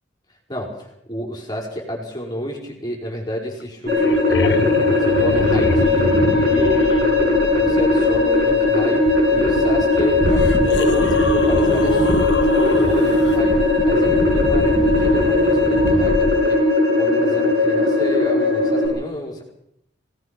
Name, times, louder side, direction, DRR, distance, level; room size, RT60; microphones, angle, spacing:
voice 1, 0.5-4.7 5.0-6.1 6.4-19.4, equal, 20° left, 0 dB, 4.9 m, -30 dB
sound 1, 3.6-3.7 3.9-7.0 9.5-9.6 10.2-13.4 15.9-16.0, left 2 dB, 65° left, 1.0 m, -26 dB
sound 2, 3.9-18.9, left 2 dB, 55° right, 7.7 m, -18 dB
sound 3, 5.4-16.5, left 1 dB, 35° left, 1.2 m, -28 dB
25.0 x 18.0 x 5.9 m, 0.76 s
head